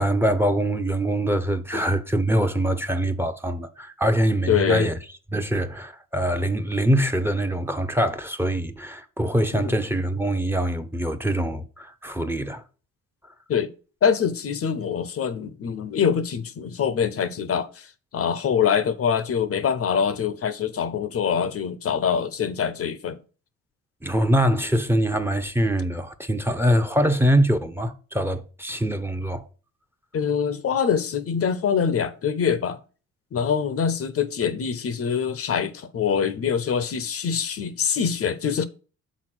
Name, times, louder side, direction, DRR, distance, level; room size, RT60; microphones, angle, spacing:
voice 1, 0.0-5.0 5.3-12.6 24.0-29.4, right 1 dB, 10° right, 0.7 m, -23 dB
voice 2, 4.5-4.9 9.5-9.7 13.5-13.7 14.0-17.9 18.1-23.2 30.1-32.8 33.3-38.6, left 7 dB, 50° left, 0.7 m, -24 dB
6.2 x 4.1 x 5.9 m
cardioid pair, 90°, 30 cm